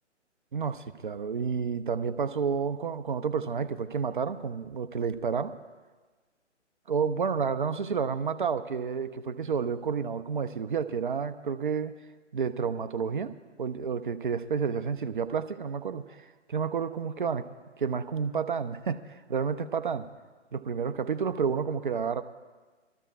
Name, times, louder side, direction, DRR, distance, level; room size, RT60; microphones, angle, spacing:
voice 1, 0.5-5.6 6.9-11.9 12.3-17.4 17.8-20.1 20.5-22.2, right 6 dB, 45° right, 11 dB, 0.5 m, -30 dB
22.5 x 13.5 x 2.4 m, 1.3 s
figure-of-eight pair, 135°, 37 cm